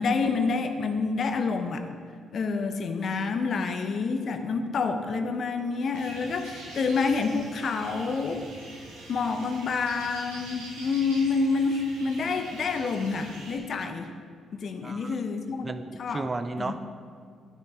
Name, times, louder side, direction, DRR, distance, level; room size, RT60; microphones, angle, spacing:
voice 1, 0.0-1.9 2.3-8.4 9.1-14.1 14.5-15.7 16.0-16.3 16.6-16.8, left 4 dB, 55° left, 7 dB, 0.8 m, -28 dB
sound 1, 5.9-13.6, right 2 dB, 80° right, 1.8 m, -44 dB
voice 2, 14.8-15.2 15.5-16.8, right 3 dB, 30° right, 10 dB, 0.6 m, -34 dB
10.5 x 9.7 x 3.4 m, 2.2 s
figure-of-eight pair, 40°, 0 cm